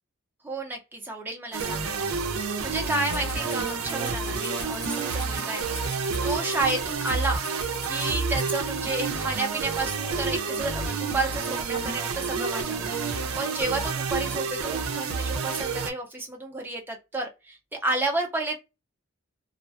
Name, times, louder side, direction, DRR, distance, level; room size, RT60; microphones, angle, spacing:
voice 1, 0.4-7.5 7.9-18.6, right 2 dB, 10° right, 0.6 m, -31 dB
sound 1, 1.5-15.9, right 5 dB, 75° right, 0.5 m, -29 dB
Rattle (instrument), 2.8-8.8, left 4 dB, 85° left, 1.1 m, -44 dB
2.4 x 2.1 x 2.4 m
head